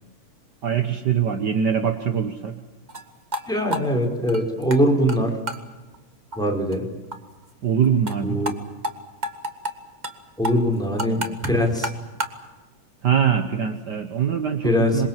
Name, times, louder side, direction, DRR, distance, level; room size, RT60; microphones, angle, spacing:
voice 1, 0.6-2.6 7.6-8.4 13.0-15.1, right 8 dB, 60° right, 7 dB, 1.1 m, -23 dB
sound 1, 2.9-3.0 3.3-3.4 3.7-4.8 5.1-5.2 5.5-5.6 5.9-6.0 6.3-6.4 6.7-6.8 7.1-7.2 7.4-7.5 7.8-8.2 8.5-8.6 8.8-8.9 9.2-9.7 10.0-10.2 10.4-12.4, right 1 dB, 25° right, 0.9 m, -29 dB
voice 2, 3.5-5.3 6.3-6.8 8.2-8.5 10.4-11.9 14.6-15.0, equal, ahead, 1 dB, 4.7 m, -22 dB
27.0 x 22.5 x 7.5 m, 1.2 s
omnidirectional pair, 3.6 m